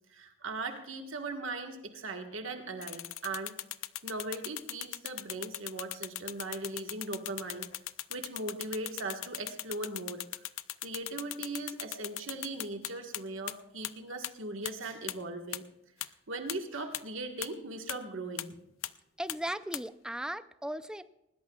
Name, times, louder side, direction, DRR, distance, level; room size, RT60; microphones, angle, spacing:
voice 1, 0.1-3.5 4.0-7.8 8.1-10.4 10.8-15.6 16.0-18.5, right 2 dB, 75° right, 4 dB, 1.5 m, -39 dB
sound 1, 2.8-13.2 13.5-13.6 13.8-13.9 14.2-14.3 14.7-14.8 15.1-15.2 15.5-15.6 16.0-16.1 16.5-16.6 16.9-17.0 17.4-17.5 17.9-18.0 18.4-18.5 18.8-18.9 19.3-19.4 19.7-19.8, left 15 dB, 80° left, 0.5 m, -37 dB
voice 2, 19.2-21.0, right 1 dB, 5° right, 12 dB, 0.5 m, -37 dB
20.0 x 20.0 x 2.4 m, 0.88 s
head